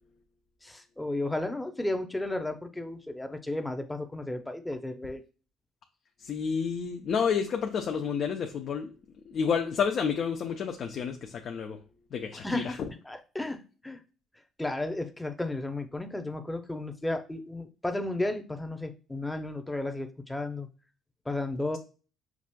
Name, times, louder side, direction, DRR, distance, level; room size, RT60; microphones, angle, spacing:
voice 1, 0.6-5.2 12.3-12.8 13.0-14.0 14.6-20.7 21.3-21.8, left 2 dB, 10° left, 0.7 m, -33 dB
voice 2, 6.2-8.9 9.3-11.8 12.1-12.9, left 6 dB, 60° left, 0.5 m, -30 dB
5.9 x 2.5 x 2.2 m
supercardioid pair, 70°, 0 cm